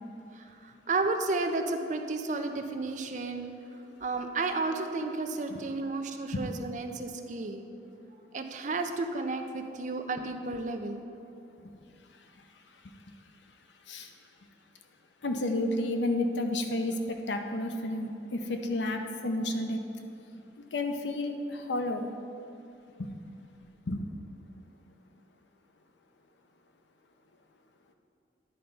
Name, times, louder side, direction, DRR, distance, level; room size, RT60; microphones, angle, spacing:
voice 1, 0.3-3.5 4.0-7.6 8.3-11.0, right 3 dB, 45° right, 6 dB, 0.5 m, -32 dB
voice 2, 15.2-19.8 20.7-22.0 23.0-23.1 23.9-24.0, left 1 dB, 90° left, 5 dB, 0.7 m, -31 dB
10.0 x 4.5 x 5.3 m, 2.6 s
head